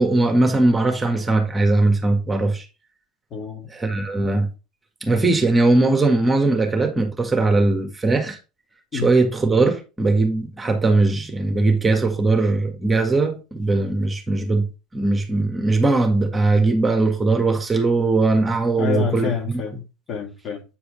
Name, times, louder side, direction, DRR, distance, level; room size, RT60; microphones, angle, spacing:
voice 1, 0.0-2.6 3.7-4.5 5.0-8.4 8.9-19.6, right 2 dB, 15° right, 1.7 m, -20 dB
voice 2, 3.3-3.7 8.9-9.1 18.8-20.6, left 7 dB, 45° left, 1.9 m, -28 dB
8.4 x 4.8 x 3.2 m
hypercardioid pair, 80°, 0 cm